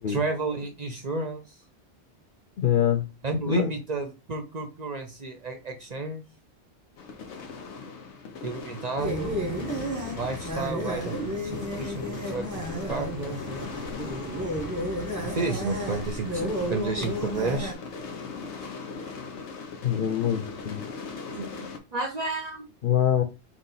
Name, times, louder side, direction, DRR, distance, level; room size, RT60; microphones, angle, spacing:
voice 1, 0.1-1.6 3.2-6.2 8.4-9.4 10.1-13.4 15.2-17.7 21.4-22.7, right 3 dB, 45° right, 0.6 m, -32 dB
voice 2, 2.6-3.0 3.5-3.7 19.8-20.8 22.8-23.2, left 10 dB, 55° left, 0.7 m, -24 dB
sound 1, 7.0-21.8, left 4 dB, 90° left, 1.1 m, -39 dB
sound 2, 9.0-17.7, equal, 20° right, 0.8 m, -32 dB
4.0 x 2.5 x 3.9 m
omnidirectional pair, 1.1 m